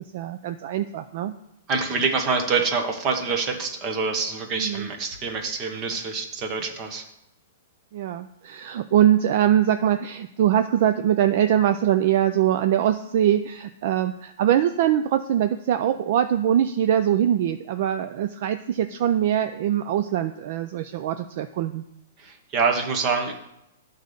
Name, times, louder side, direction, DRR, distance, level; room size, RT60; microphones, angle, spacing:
voice 1, 0.1-1.3 4.6-4.9 7.9-21.8, right 10 dB, 45° right, 9 dB, 0.4 m, -22 dB
voice 2, 1.7-7.0 22.2-23.3, right 4 dB, 25° right, 5 dB, 1.0 m, -26 dB
9.4 x 4.0 x 6.4 m, 0.83 s
hypercardioid pair, 165°, 0 cm